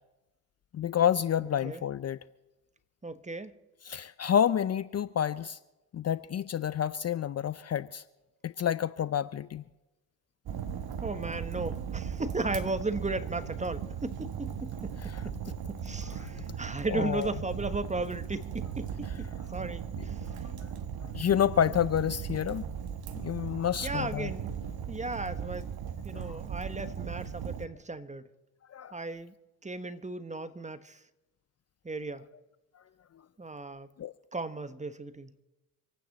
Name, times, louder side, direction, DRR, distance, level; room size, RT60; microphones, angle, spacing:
voice 1, 0.7-2.2 3.8-5.6 5.9-8.0 8.4-9.6 15.0-15.2 16.0-16.6 16.9-17.3 20.0-20.1 21.1-22.6 23.1-24.3 26.1-26.4 28.7-29.0 34.0-34.1, left 9 dB, 40° left, 16 dB, 0.6 m, -29 dB
voice 2, 3.0-3.5 11.0-14.9 15.2-15.3 15.8-20.2 23.8-24.5 24.9-25.7 26.0-28.3 28.9-29.3 29.6-31.0 31.8-32.2 33.4-33.9 34.3-35.4, right 2 dB, 15° right, 12 dB, 1.2 m, -36 dB
Fire, 10.5-27.7, right 8 dB, 60° right, 1.3 m, -38 dB
27.0 x 9.2 x 4.2 m, 1.1 s
hypercardioid pair, 55°, 41 cm